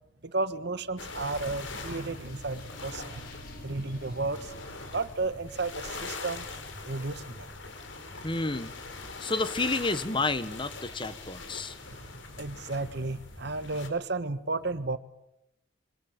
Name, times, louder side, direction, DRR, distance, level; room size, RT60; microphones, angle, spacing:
voice 1, 0.2-3.2 3.6-4.5 4.9-6.4 6.9-7.5 12.3-15.0, right 3 dB, 55° right, 13 dB, 1.4 m, -33 dB
sound 1, 1.0-13.9, left 3 dB, 65° left, 4.4 m, -42 dB
sound 2, 1.1-12.9, left 1 dB, 45° left, 4.8 m, -52 dB
voice 2, 8.2-8.7 9.2-11.7, left 3 dB, 25° left, 13 dB, 1.3 m, -30 dB
26.5 x 24.5 x 8.9 m, 0.85 s
head